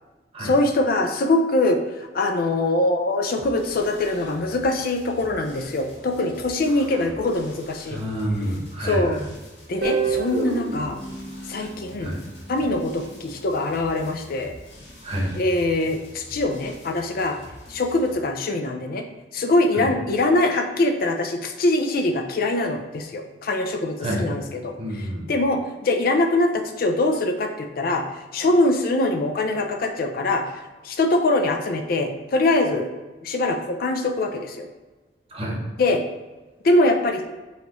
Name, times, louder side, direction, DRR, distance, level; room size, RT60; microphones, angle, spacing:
voice 1, 0.4-8.0 8.8-9.2 9.7-11.0 11.5-12.1 12.5-14.5 15.3-17.4 17.7-19.1 19.3-30.4 30.8-32.9 33.2-34.7 35.8-36.0 36.6-37.2, left 2 dB, 55° left, 5 dB, 0.5 m, -23 dB
sound 1, 3.3-18.1, left 1 dB, 90° left, 1.4 m, -45 dB
voice 2, 7.9-9.2 12.0-12.2 15.0-15.4 19.7-19.9 24.0-24.3 24.8-25.3 35.3-35.6, equal, 35° right, -2 dB, 1.0 m, -28 dB
Guitar, 9.8-12.8, right 4 dB, 85° right, 0.9 m, -28 dB
5.6 x 3.1 x 2.9 m, 1.2 s
head